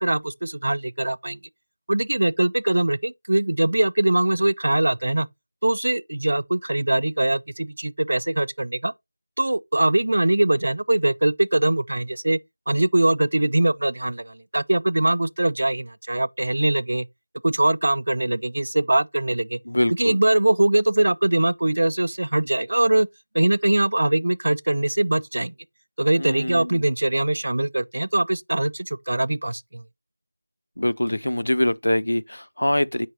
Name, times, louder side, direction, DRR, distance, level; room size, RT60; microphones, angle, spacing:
voice 1, 0.0-1.4 1.9-5.3 5.6-8.9 9.4-12.4 12.7-17.1 17.4-19.6 20.0-23.1 23.3-25.5 26.0-29.8, right 1 dB, 55° right, 0.3 m, -22 dB
voice 2, 19.7-20.2 26.2-26.8 30.8-33.1, left 1 dB, 85° left, 0.3 m, -24 dB
7.8 x 4.6 x 2.7 m
figure-of-eight pair, 175°, 0 cm